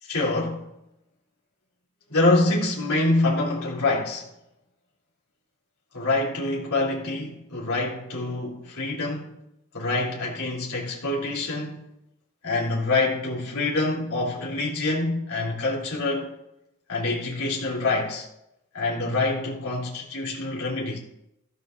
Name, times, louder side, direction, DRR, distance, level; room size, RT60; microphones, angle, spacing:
voice 1, 0.0-0.6 2.1-4.3 5.9-9.4 9.7-11.8 12.4-16.3 16.9-18.3 18.7-21.0, left 2 dB, 85° left, 3.1 m, -26 dB
20.5 x 14.5 x 2.6 m
head